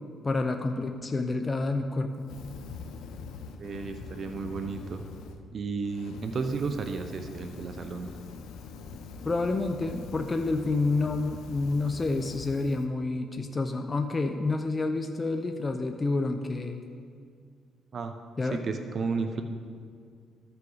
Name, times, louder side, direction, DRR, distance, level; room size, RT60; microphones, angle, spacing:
voice 1, 0.2-2.4 9.2-16.8 18.4-18.6, left 3 dB, 30° left, 6 dB, 0.5 m, -29 dB
Fire, 2.2-5.4 5.8-12.8, left 4 dB, 85° left, 0.6 m, -43 dB
voice 2, 3.6-5.0 5.5-8.1 17.9-18.1 18.5-19.4, right 4 dB, 50° right, 7 dB, 0.5 m, -33 dB
14.0 x 5.7 x 3.9 m, 2.1 s
cardioid pair, 90°, 0 cm